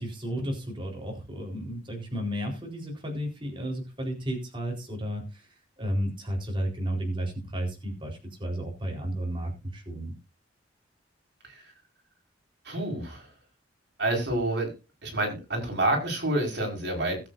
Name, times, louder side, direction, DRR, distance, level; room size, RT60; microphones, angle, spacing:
voice 1, 0.0-10.1, equal, 25° right, 0 dB, 4.3 m, -33 dB
voice 2, 12.6-13.3 14.0-14.7 15.0-17.2, right 1 dB, 60° right, 2 dB, 4.9 m, -28 dB
20.0 x 8.7 x 2.7 m, 0.29 s
head